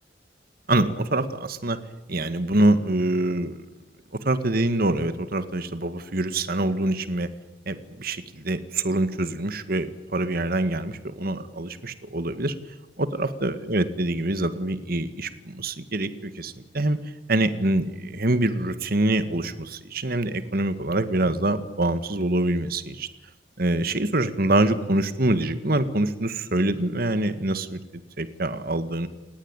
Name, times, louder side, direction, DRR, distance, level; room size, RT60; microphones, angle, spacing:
voice 1, 0.7-1.8 2.1-3.6 4.2-7.3 7.7-12.5 13.0-17.0 17.3-23.1 23.6-27.8 28.2-29.1, right 1 dB, 55° right, 11 dB, 2.0 m, -25 dB
30.0 x 18.5 x 9.1 m, 1.1 s
head